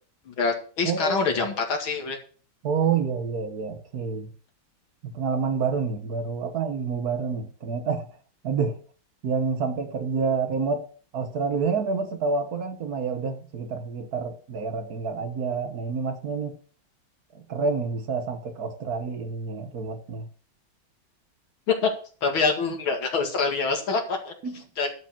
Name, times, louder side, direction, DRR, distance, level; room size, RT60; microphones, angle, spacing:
voice 1, 0.3-2.2 21.7-21.9 22.2-24.3 24.8-24.9, left 4 dB, 85° left, 2.9 m, -25 dB
voice 2, 0.8-1.3 2.6-4.3 5.0-8.1 8.4-8.8 9.2-10.9 11.1-16.6 17.3-20.3 24.4-24.6, right 5 dB, 55° right, 1.4 m, -28 dB
12.0 x 4.9 x 7.3 m
omnidirectional pair, 2.2 m